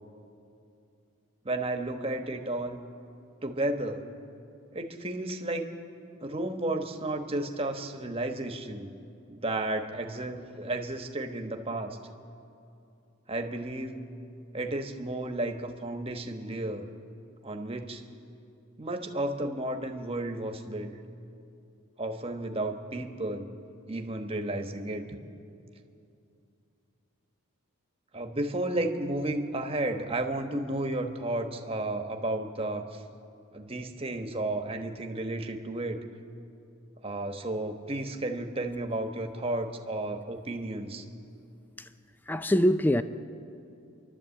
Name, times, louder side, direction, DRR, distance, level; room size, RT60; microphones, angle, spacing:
voice 1, 1.4-2.8 3.4-4.0 4.7-5.7 6.2-8.9 9.3-12.0 13.3-14.1 14.5-16.9 17.4-18.0 18.8-21.0 22.0-23.5 23.9-25.2 28.1-33.0 33.5-36.0 37.0-41.0, right 1 dB, 25° right, 1.2 m, -33 dB
voice 2, 42.3-43.0, equal, 10° left, 0.4 m, -24 dB
29.0 x 12.0 x 8.4 m
head